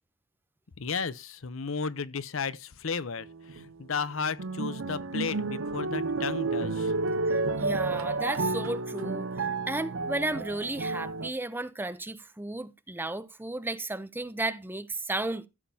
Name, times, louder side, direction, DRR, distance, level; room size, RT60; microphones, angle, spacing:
voice 1, 0.8-6.9, left 5 dB, 70° left, 0.7 m, -34 dB
sound 1, 3.2-3.6 4.1-11.3, right 3 dB, 65° right, 0.8 m, -31 dB
voice 2, 7.3-15.5, right 2 dB, 10° right, 0.6 m, -34 dB
14.5 x 7.4 x 2.8 m
head